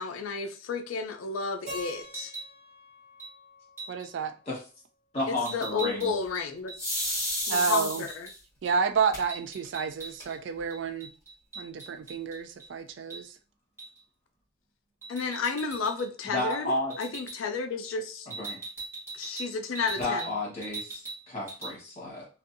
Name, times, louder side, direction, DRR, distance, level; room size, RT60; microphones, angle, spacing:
voice 1, 0.0-2.3 5.3-6.7 7.5-8.3 15.1-16.7 17.0-18.3 19.1-20.3, left 5 dB, 85° left, 0.4 m, -32 dB
Keyboard (musical), 1.7-4.6, left 1 dB, 45° right, 1.5 m, -45 dB
sound 1, 2.0-2.5 3.2-3.3 3.8-4.1 5.4-8.3 8.6-8.8 9.0-10.4 10.7-12.7 13.1-13.2 13.8-14.0 15.0-16.1 16.4-16.6 16.9-17.4 18.3-20.3 20.6-21.2 21.5-21.7, right 3 dB, 15° right, 0.9 m, -41 dB
voice 2, 3.9-4.3 7.5-8.0 8.6-11.1 11.6-13.3, right 6 dB, 60° right, 0.3 m, -30 dB
voice 3, 5.1-6.1 16.2-16.9 18.3-18.6 20.0-22.3, left 1 dB, 35° left, 1.2 m, -32 dB
sound 2, 6.8-8.3 9.1-9.2 9.6-9.7 10.0-10.6, left 1 dB, 15° left, 1.3 m, -31 dB
2.6 x 2.3 x 2.5 m
head